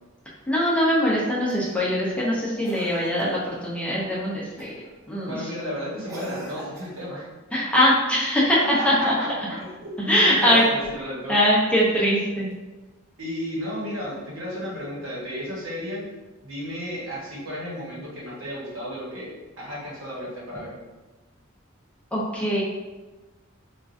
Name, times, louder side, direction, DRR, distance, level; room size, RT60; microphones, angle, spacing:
voice 1, 0.5-4.7 5.1-5.4 7.5-9.3 10.1-10.6 11.3-12.5 22.1-22.6, equal, 5° left, -6 dB, 0.6 m, -22 dB
Cough, 1.5-1.9 2.6-3.4 4.6-4.9 6.1-7.2 10.3-11.0 12.5-12.6, right 1 dB, 20° right, 1.2 m, -41 dB
voice 2, 5.3-7.2 8.5-9.3 9.6-11.4 13.2-16.0 16.4-20.8, equal, 70° right, -5 dB, 1.1 m, -33 dB
4.4 x 2.4 x 2.5 m, 1.2 s
head